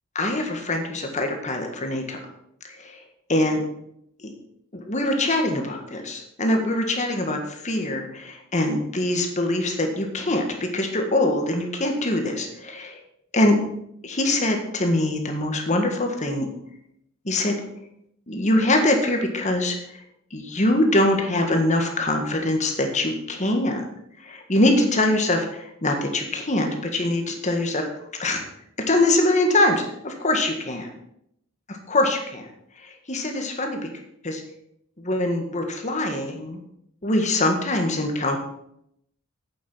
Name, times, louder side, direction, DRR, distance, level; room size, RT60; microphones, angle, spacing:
voice 1, 0.2-2.2 2.6-3.0 3.3-3.6 4.2-4.3 4.7-13.0 13.3-13.6 14.0-16.5 17.3-17.6 18.3-20.0 20.3-23.9 24.2-27.8 28.2-28.4 28.9-30.9 31.9-32.5 32.8-33.8 34.2-34.4 35.0-36.6 37.0-38.4, left 1 dB, 35° left, 3 dB, 1.7 m, -23 dB
8.6 x 7.7 x 6.3 m, 0.75 s
head